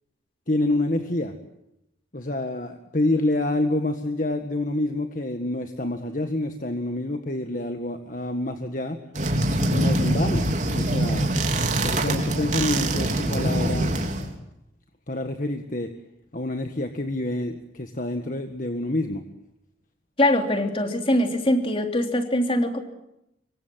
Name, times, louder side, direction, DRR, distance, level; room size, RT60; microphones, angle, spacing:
voice 1, 0.5-1.4 2.1-9.0 9.7-11.3 11.8-14.0 15.1-15.9 16.3-19.2, left 1 dB, 45° left, 6 dB, 1.7 m, -27 dB
sound 1, 9.1-14.3, right 1 dB, 40° right, 3.8 m, -24 dB
voice 2, 20.2-22.8, left 1 dB, 30° left, 5 dB, 3.3 m, -22 dB
26.0 x 24.0 x 7.7 m, 0.84 s
head